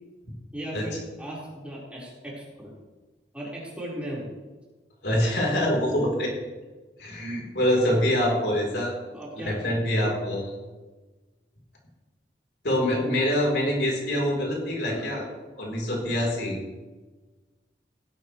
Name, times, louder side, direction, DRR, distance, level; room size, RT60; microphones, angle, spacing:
voice 1, 0.5-2.7 3.3-4.3 9.1-9.8 14.9-15.2, right 1 dB, 5° right, -7 dB, 5.0 m, -37 dB
voice 2, 5.0-6.3 7.0-8.9 9.4-10.6 12.6-15.3 15.6-16.6, left 1 dB, 70° left, -2 dB, 4.3 m, -25 dB
17.0 x 13.0 x 3.4 m, 1.2 s
head